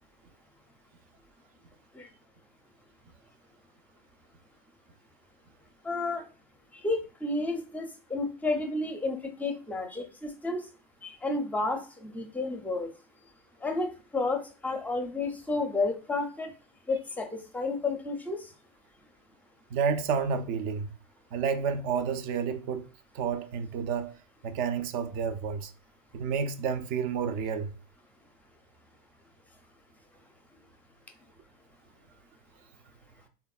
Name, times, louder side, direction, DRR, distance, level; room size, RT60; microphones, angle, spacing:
voice 1, 5.8-6.3 6.7-10.6 11.0-12.9 13.6-16.5 16.9-18.5, left 3 dB, 10° left, 0.5 m, -31 dB
voice 2, 19.7-20.9 21.3-22.9 23.1-24.1 24.4-25.7 26.1-27.7, right 6 dB, 45° right, 0.4 m, -30 dB
3.5 x 2.1 x 2.3 m
hypercardioid pair, 100°, 21 cm